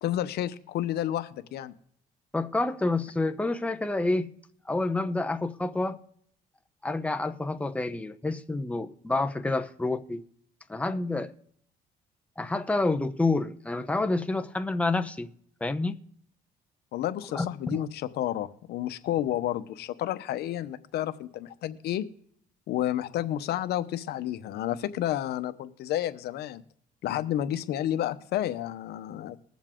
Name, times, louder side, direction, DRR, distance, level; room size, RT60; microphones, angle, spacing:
voice 1, 0.0-1.7 16.9-22.0 22.7-26.6 27.0-29.4, left 12 dB, 70° left, 0.9 m, -31 dB
voice 2, 2.3-4.3 4.7-6.0 6.8-10.2 10.7-11.3 12.4-15.3 15.6-16.0 17.3-17.8, left 2 dB, 10° left, 0.8 m, -28 dB
20.5 x 7.2 x 3.7 m
cardioid pair, 110°, 17 cm